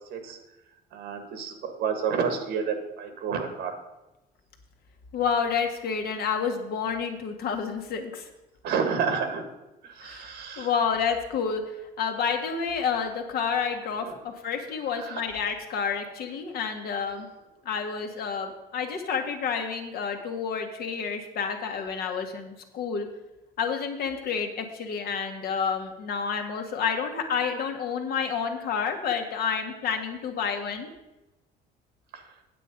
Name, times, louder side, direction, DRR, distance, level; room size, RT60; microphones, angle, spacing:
voice 1, 0.9-3.7 8.6-9.4 9.8-10.7 14.0-14.1 14.9-15.2 32.1-32.2, right 6 dB, 80° right, 7 dB, 1.7 m, -30 dB
voice 2, 5.1-8.3 10.0-10.3 10.6-11.6 12.0-17.3 17.6-23.1 23.6-30.9, left 6 dB, 65° left, 4 dB, 1.6 m, -29 dB
8.6 x 8.2 x 5.2 m, 0.98 s
cardioid pair, 110°, 17 cm